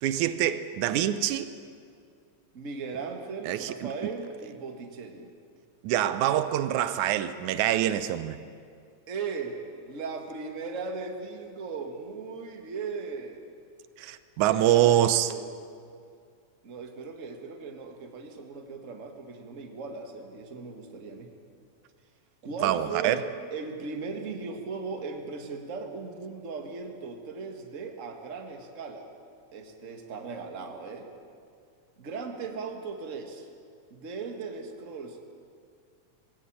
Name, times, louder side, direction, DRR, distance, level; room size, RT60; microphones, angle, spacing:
voice 1, 0.0-1.5 3.4-3.9 5.8-8.4 14.0-15.3 22.6-23.2, right 12 dB, 90° right, 12 dB, 2.2 m, -25 dB
voice 2, 2.5-5.3 9.1-9.6 9.8-13.5 14.5-15.5 16.6-21.3 22.4-23.2 23.5-29.1 29.5-31.1 32.0-33.5 33.9-35.4, right 4 dB, 30° right, 3 dB, 1.6 m, -38 dB
19.0 x 16.0 x 8.8 m, 2.2 s
omnidirectional pair, 3.4 m